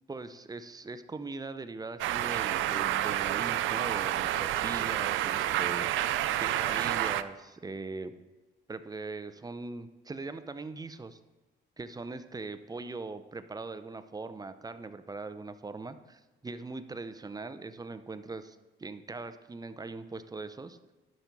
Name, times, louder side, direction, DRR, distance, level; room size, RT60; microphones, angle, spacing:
voice 1, 0.1-6.1 6.4-8.1 8.7-11.2 11.8-20.8, right 3 dB, 20° right, 11 dB, 0.6 m, -41 dB
sound 1, 2.0-7.2, right 12 dB, 80° right, 0.4 m, -29 dB
11.5 x 5.2 x 4.7 m, 1.2 s
cardioid pair, 90°, 20 cm